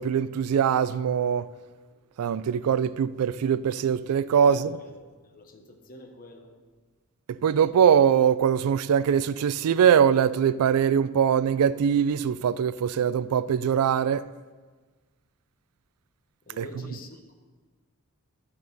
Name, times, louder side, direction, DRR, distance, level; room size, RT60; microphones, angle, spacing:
voice 1, 0.0-1.5 2.2-4.7 7.3-14.3 16.6-16.7, right 8 dB, 85° right, 0.3 m, -22 dB
voice 2, 4.4-5.0 5.2-6.5 16.5-17.3, left 2 dB, 40° left, 1.1 m, -45 dB
10.5 x 6.6 x 5.3 m
head